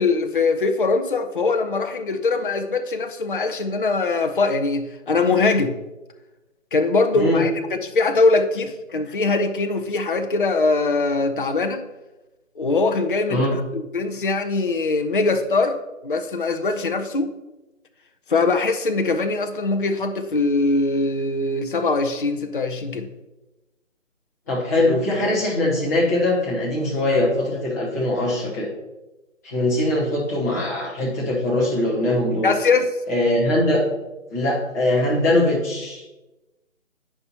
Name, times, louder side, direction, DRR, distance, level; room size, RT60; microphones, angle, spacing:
voice 1, 0.0-5.8 6.7-7.5 7.8-11.8 12.6-17.3 18.3-23.1 32.4-32.9, left 3 dB, 45° left, 7 dB, 0.4 m, -22 dB
voice 2, 7.1-7.4 13.3-13.5 24.5-28.7 29.4-32.5 33.1-33.8 34.3-36.0, left 1 dB, 15° left, -6 dB, 0.9 m, -21 dB
9.4 x 5.5 x 2.8 m, 1.0 s
figure-of-eight pair, 160°, 40 cm